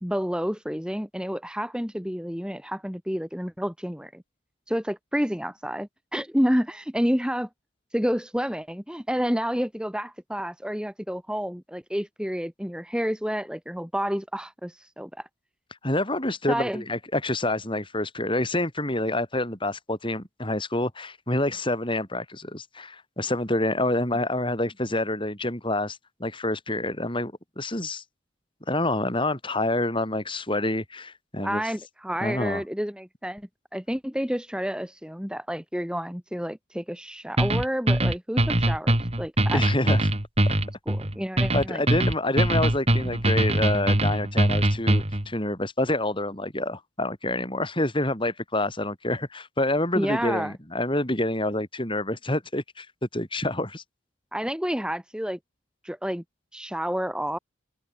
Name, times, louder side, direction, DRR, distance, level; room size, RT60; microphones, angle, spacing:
voice 1, 0.0-4.2 4.7-7.5 7.9-15.3 16.5-16.8 31.4-39.6 40.9-41.8 49.9-50.5 54.3-55.4 55.8-56.2 56.5-57.4, equal, 5° right, 3.3 m, -29 dB
voice 2, 15.8-28.0 28.7-31.6 32.2-32.6 39.5-40.1 41.5-52.9 53.1-53.8, left 1 dB, 25° left, 7.4 m, -27 dB
sound 1, 37.4-45.3, right 1 dB, 30° right, 2.9 m, -22 dB
open air
head